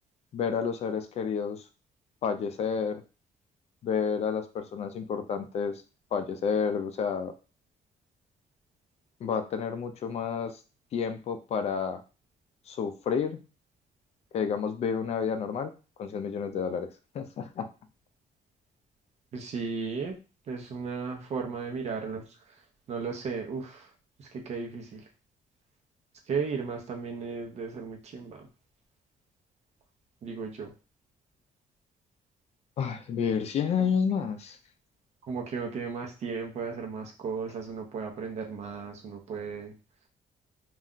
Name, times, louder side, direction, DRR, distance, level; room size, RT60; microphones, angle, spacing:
voice 1, 0.3-1.6 2.2-3.0 3.8-5.7 6.1-7.3 9.2-10.6 10.9-12.0 12.7-13.4 14.3-15.7 16.0-16.9 17.1-17.7 32.8-34.6, left 6 dB, 50° left, 9 dB, 0.4 m, -30 dB
voice 2, 19.3-20.2 20.5-22.2 22.9-23.9 24.2-25.0 26.3-28.5 30.2-30.7 35.3-39.7, right 5 dB, 55° right, 2 dB, 0.7 m, -35 dB
2.4 x 2.2 x 3.7 m, 0.32 s
cardioid pair, 140°, 14 cm